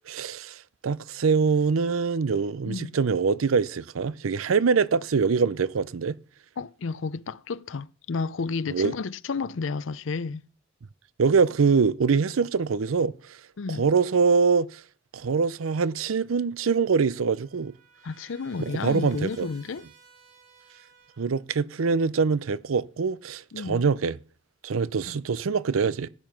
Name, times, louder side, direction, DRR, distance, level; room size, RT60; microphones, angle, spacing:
voice 1, 0.1-6.1 8.7-9.0 11.2-13.1 13.8-14.8 15.1-17.7 18.6-19.5 21.2-24.2 24.6-26.1, right 5 dB, 85° right, 0.5 m, -24 dB
voice 2, 6.6-10.4 13.6-13.9 18.0-19.9 23.5-23.8 25.1-25.2, left 4 dB, 70° left, 0.5 m, -31 dB
Trumpet, 16.7-21.4, right 5 dB, 70° right, 7.8 m, -56 dB
15.5 x 9.1 x 5.8 m
head